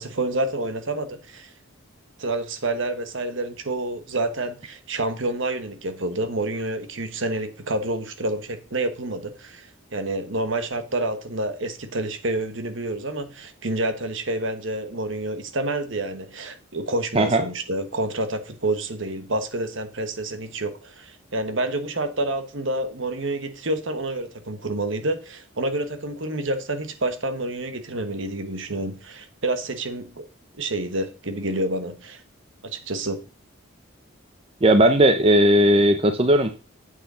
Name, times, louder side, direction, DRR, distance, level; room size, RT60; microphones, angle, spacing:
voice 1, 0.0-1.5 2.2-30.3 30.6-32.2 32.6-33.2, right 2 dB, 65° right, 1.3 m, -28 dB
voice 2, 34.6-36.5, right 1 dB, 25° right, 0.7 m, -17 dB
8.1 x 6.5 x 5.6 m
head